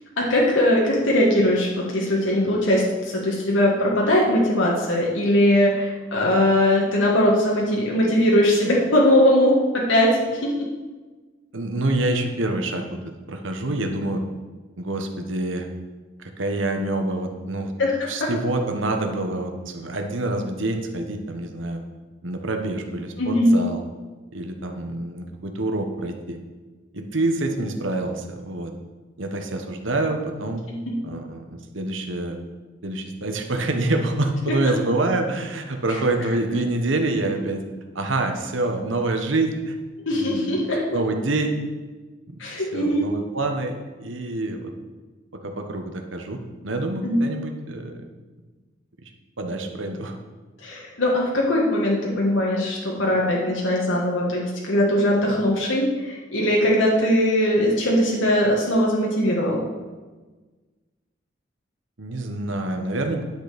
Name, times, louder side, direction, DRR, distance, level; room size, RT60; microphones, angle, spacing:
voice 1, 0.2-10.7 17.8-18.3 23.2-23.5 40.0-40.8 42.4-43.0 47.0-47.2 50.6-59.6, left 1 dB, 85° left, -3 dB, 1.8 m, -20 dB
voice 2, 11.5-13.0 13.3-14.2 14.8-15.7 16.2-17.7 18.1-21.8 22.2-23.8 24.3-26.4 26.9-28.7 29.2-30.6 31.0-32.4 32.8-37.6 37.9-39.7 40.1-41.6 42.3-42.4 42.7-44.7 45.3-48.0 49.4-50.1 62.0-63.2, right 2 dB, 90° right, 5 dB, 1.2 m, -26 dB
10.5 x 6.7 x 5.1 m, 1.3 s
head